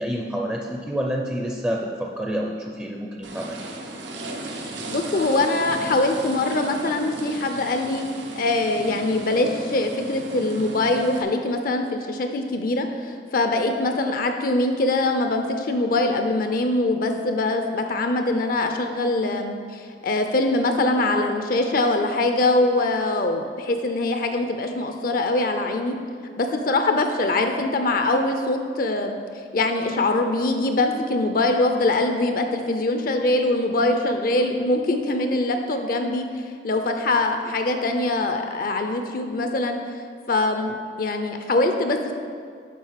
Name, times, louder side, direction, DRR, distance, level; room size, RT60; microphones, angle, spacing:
voice 1, 0.0-3.6, equal, 10° right, -1 dB, 0.5 m, -28 dB
sound 1, 3.2-11.2, right 2 dB, 90° right, 0.9 m, -35 dB
voice 2, 4.5-8.0 8.3-26.0 26.4-29.2 29.5-40.0 40.3-42.1, left 2 dB, 50° left, 5 dB, 0.5 m, -23 dB
7.5 x 5.0 x 5.7 m, 2.2 s
head